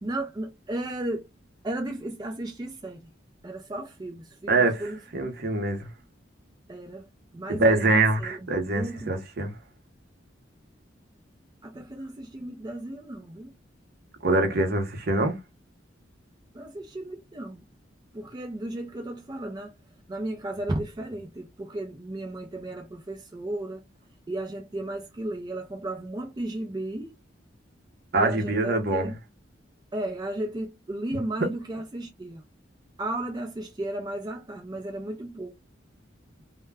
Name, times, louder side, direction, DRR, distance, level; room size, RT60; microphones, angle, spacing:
voice 1, 0.0-1.3 1.6-3.0 3.4-5.2 6.7-7.1 7.3-9.2 11.6-13.5 16.5-17.6 18.1-19.7 20.1-23.8 24.3-27.1 28.1-29.1 29.9-32.4 33.0-35.5, right 1 dB, 20° right, 0.4 m, -34 dB
voice 2, 4.5-4.8 5.1-5.9 7.5-9.5 14.2-15.4 28.1-29.1, right 2 dB, 55° right, 0.8 m, -24 dB
2.1 x 2.1 x 3.3 m
head